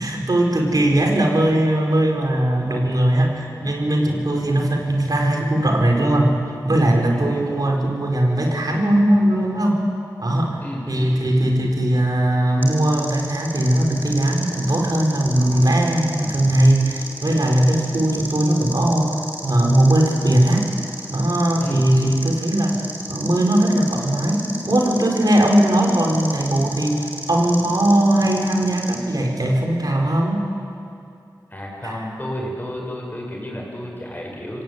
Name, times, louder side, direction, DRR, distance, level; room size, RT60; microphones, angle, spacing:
voice 1, 0.0-6.4 6.6-9.8 10.2-10.6 10.9-20.7 21.1-22.8 23.1-30.5 31.8-32.1, right 1 dB, 60° right, 1 dB, 4.5 m, -19 dB
voice 2, 7.1-7.4 10.6-11.1 21.6-21.9 31.5-34.6, equal, 25° left, -2 dB, 6.9 m, -32 dB
sound 1, 12.6-29.0, right 1 dB, 25° right, 4.4 m, -34 dB
25.0 x 18.0 x 9.4 m, 2.6 s
cardioid pair, 50°, 7 cm